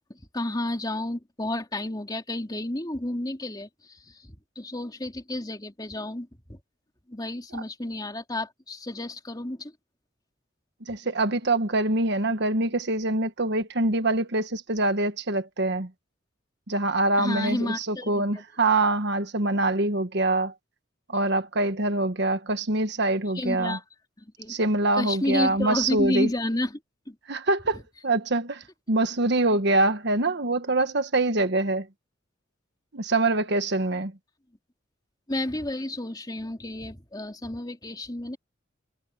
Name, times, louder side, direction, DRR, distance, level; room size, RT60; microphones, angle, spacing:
voice 1, 0.1-6.6 7.1-9.7 17.2-18.4 23.3-23.8 24.2-24.6 25.0-26.8 27.1-27.2 27.7-27.8 35.3-38.4, left 1 dB, 20° left, 3.0 m, -31 dB
voice 2, 10.9-15.9 16.7-20.5 21.1-23.8 24.5-26.3 27.3-28.6 28.9-31.8 32.9-34.1, right 2 dB, 60° right, 1.4 m, -24 dB
head